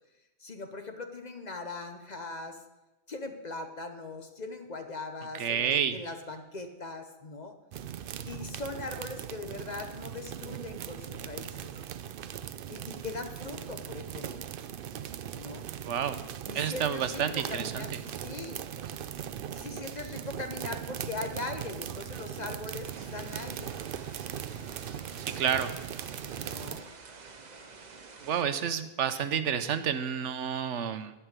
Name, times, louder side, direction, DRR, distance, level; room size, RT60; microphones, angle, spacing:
voice 1, 0.4-2.6 3.1-7.5 8.3-11.7 12.7-14.5 15.3-15.7 16.5-18.6 19.5-23.7 26.4-26.9, left 3 dB, 40° left, 6 dB, 0.9 m, -40 dB
voice 2, 5.4-6.0 15.9-16.2 16.5-17.8 25.4-25.7 28.2-31.1, right 8 dB, 80° right, 11 dB, 1.1 m, -29 dB
sound 1, 7.7-26.8, right 9 dB, 60° right, 0.6 m, -39 dB
sound 2, 22.8-28.4, right 4 dB, 40° right, 0.9 m, -49 dB
11.0 x 5.9 x 8.1 m, 1.0 s
omnidirectional pair, 1.2 m